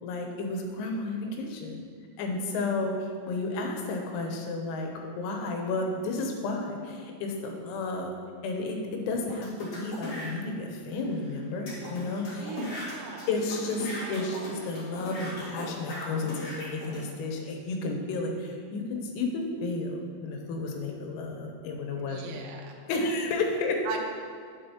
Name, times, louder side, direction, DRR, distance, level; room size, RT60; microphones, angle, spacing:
voice 1, 0.0-1.8 2.2-8.1 8.4-12.6 13.3-22.4 22.9-23.8, left 3 dB, 90° left, 2 dB, 3.5 m, -32 dB
sound 1, 9.3-10.3 10.9-11.0 11.2-11.3 11.7-17.0, left 1 dB, 50° left, 1.8 m, -38 dB
voice 2, 12.4-13.3 14.0-14.2 22.0-22.8 23.9-24.0, right 6 dB, 80° right, 0 dB, 2.9 m, -40 dB
8.8 x 7.4 x 2.8 m, 2.1 s
omnidirectional pair, 5.9 m